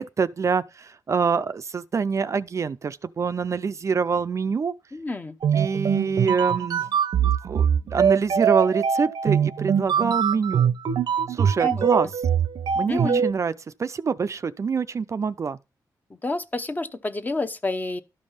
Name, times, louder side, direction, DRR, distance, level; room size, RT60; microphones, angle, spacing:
voice 1, 0.0-4.7 5.5-6.9 7.2-10.7 11.3-12.1 12.8-13.5 13.8-15.6, right 5 dB, 45° right, 0.5 m, -25 dB
voice 2, 4.9-5.4 11.6-11.9 12.9-13.2 16.2-18.0, left 2 dB, 25° left, 0.8 m, -29 dB
sound 1, 5.4-13.3, right 8 dB, 80° right, 0.7 m, -22 dB
12.5 x 5.3 x 5.6 m
wide cardioid pair, 130°, 7 cm